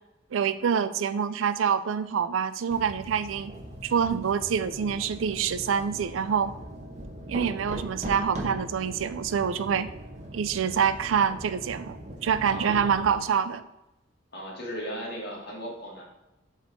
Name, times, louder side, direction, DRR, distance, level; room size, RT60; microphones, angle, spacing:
voice 1, 0.3-3.5 3.8-6.5 7.3-9.9 10.3-13.6, right 7 dB, 85° right, 14 dB, 0.4 m, -26 dB
sound 1, 2.7-13.2, right 1 dB, 35° right, 1.1 m, -40 dB
voice 2, 12.4-13.0 14.3-16.0, equal, 60° left, -2 dB, 1.9 m, -37 dB
6.0 x 4.5 x 4.1 m, 0.95 s
head